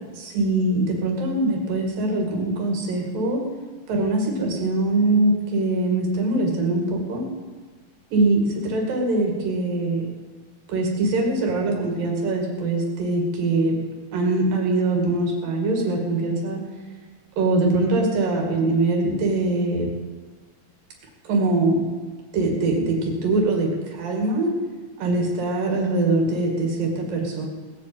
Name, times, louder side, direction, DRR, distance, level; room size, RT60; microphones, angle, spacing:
voice 1, 0.1-3.4 3.9-7.3 8.1-10.0 10.7-13.8 14.1-16.6 17.4-19.9 21.3-21.9 22.3-24.5 25.0-27.5, right 2 dB, 80° right, 0 dB, 4.0 m, -22 dB
19.0 x 8.2 x 7.8 m, 1.4 s
omnidirectional pair, 4.0 m